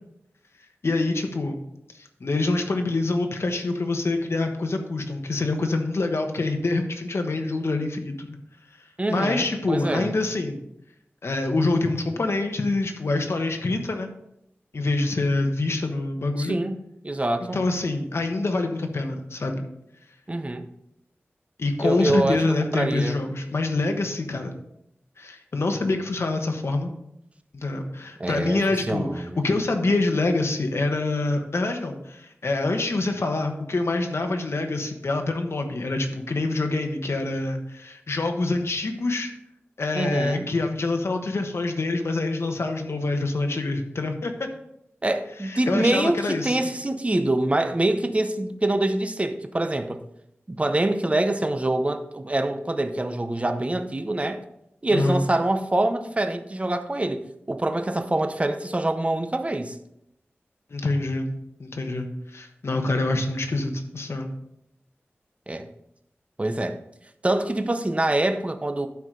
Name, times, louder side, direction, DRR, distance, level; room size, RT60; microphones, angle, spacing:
voice 1, 0.8-1.6 2.0-8.4 9.1-10.6 11.2-14.1 14.7-16.6 17.5-19.7 21.6-24.5 25.2-26.9 27.5-39.3 39.8-44.5 45.4-46.6 54.9-55.2 60.7-61.3 61.6-64.3, left 2 dB, 70° left, 1.1 m, -26 dB
voice 2, 9.0-10.1 16.4-16.8 17.0-17.6 20.3-20.6 21.8-23.2 28.2-29.4 39.9-40.5 45.0-50.0 50.5-54.4 54.8-59.8 65.5-65.7 66.4-66.8 67.2-68.9, right 1 dB, 30° right, 0.7 m, -25 dB
12.0 x 4.8 x 3.8 m
wide cardioid pair, 80°, 5 cm